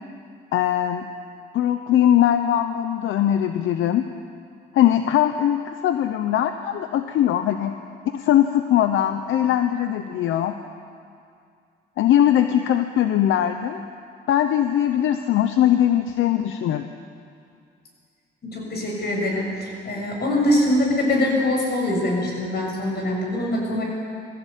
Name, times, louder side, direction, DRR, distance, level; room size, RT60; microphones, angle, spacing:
voice 1, 0.5-1.1 1.5-4.1 4.7-7.7 8.1-10.5 12.0-13.8 14.3-16.8, left 11 dB, 80° left, 8 dB, 0.9 m, -20 dB
voice 2, 18.4-23.8, left 1 dB, 55° left, -1 dB, 7.1 m, -23 dB
21.0 x 15.5 x 8.4 m, 2.3 s
cardioid pair, 90°, 20 cm